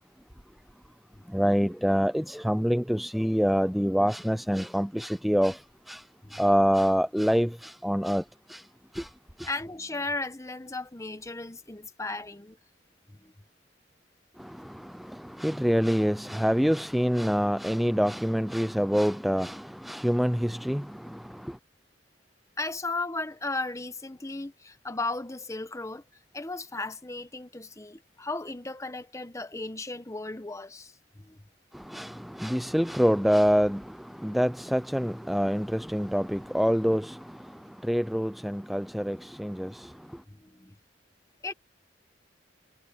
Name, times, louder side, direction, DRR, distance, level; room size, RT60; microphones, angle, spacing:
voice 1, 1.3-5.6 5.9-6.0 6.3-8.2 8.5-8.6 8.9-9.1 9.4-9.5 14.4-21.6 31.7-37.4 37.8-39.9, equal, ahead, 0.4 m, -26 dB
voice 2, 9.5-12.6 13.2-13.3 22.6-26.0 26.3-31.4 40.3-40.7 41.4-41.5, left 2 dB, 15° left, 1.0 m, -35 dB
head